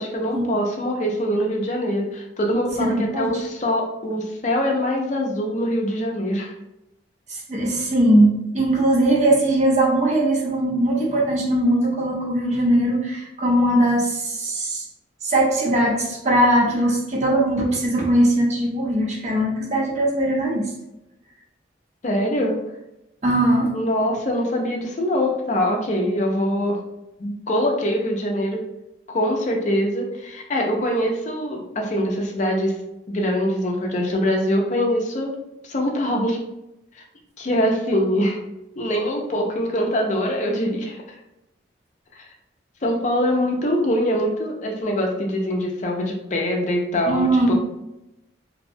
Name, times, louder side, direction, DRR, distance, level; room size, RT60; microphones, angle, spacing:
voice 1, 0.0-6.5 22.0-22.6 23.7-26.8 27.2-28.6 29.1-32.8 33.1-35.3 35.6-36.4 37.0-37.1 37.4-38.4 38.8-41.0 42.8-47.5, equal, 40° left, 0 dB, 0.4 m, -23 dB
voice 2, 2.8-3.4 7.3-14.8 15.2-20.7 23.2-23.7 47.1-47.5, right 1 dB, 35° right, -3 dB, 0.6 m, -20 dB
2.6 x 2.1 x 2.6 m, 0.89 s
head